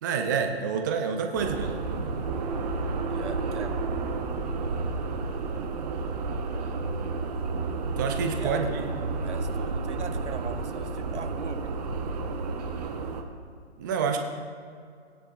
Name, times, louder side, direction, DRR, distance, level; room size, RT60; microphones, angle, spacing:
voice 1, 0.0-1.8 8.0-8.8 13.8-14.2, right 6 dB, 20° right, 4 dB, 0.4 m, -28 dB
sound 1, 1.3-4.4, left 3 dB, 40° left, 1.4 m, -44 dB
sound 2, 1.4-13.2, right 4 dB, 35° right, 0.9 m, -31 dB
voice 2, 3.1-3.7 8.3-8.8 9.1-11.7, right 5 dB, 80° right, 8 dB, 1.0 m, -39 dB
17.0 x 10.0 x 2.5 m, 2.2 s
figure-of-eight pair, 140°, 34 cm